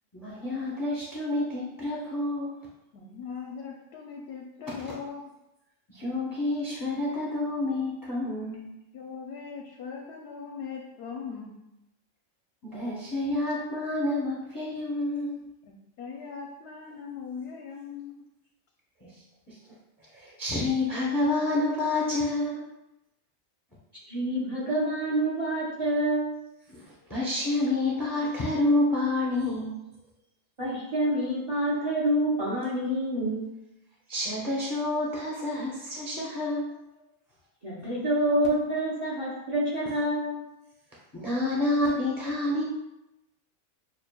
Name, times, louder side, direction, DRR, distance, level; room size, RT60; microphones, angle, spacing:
voice 1, 0.1-2.7 5.9-8.7 12.6-15.5 19.0-19.1 19.5-19.6 20.1-22.6 26.7-29.8 34.1-36.8 41.1-42.6, left 2 dB, 20° left, -6 dB, 0.6 m, -28 dB
voice 2, 2.9-5.2 8.9-11.6 15.6-18.2, left 6 dB, 65° left, 0 dB, 0.7 m, -40 dB
voice 3, 24.1-26.4 30.6-33.5 37.6-40.3, right 1 dB, 30° right, -6 dB, 0.8 m, -27 dB
6.8 x 2.4 x 2.2 m, 0.93 s
omnidirectional pair, 1.4 m